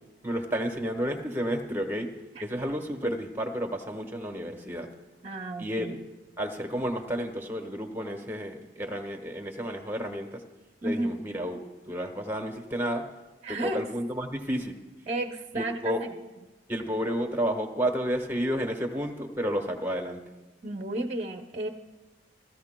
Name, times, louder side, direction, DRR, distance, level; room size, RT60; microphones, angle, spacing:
voice 1, 0.2-2.1 2.4-4.9 5.6-6.0 6.4-10.4 10.8-13.1 13.5-14.8 15.5-16.0 16.7-20.2, equal, 10° right, 3 dB, 1.2 m, -31 dB
voice 2, 5.2-6.0 10.8-11.2 13.4-13.8 15.1-16.1 20.6-21.7, right 1 dB, 35° right, 4 dB, 0.6 m, -32 dB
29.0 x 14.5 x 2.2 m, 1.1 s
head